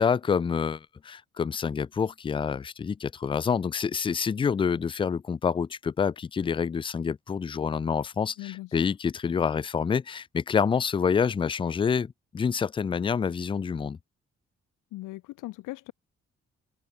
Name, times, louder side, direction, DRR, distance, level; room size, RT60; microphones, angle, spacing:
voice 1, 0.0-14.0, left 6 dB, 15° left, 0.3 m, -27 dB
voice 2, 8.4-8.8 14.9-15.9, left 18 dB, 75° left, 1.1 m, -39 dB
hypercardioid pair, 45°, 31 cm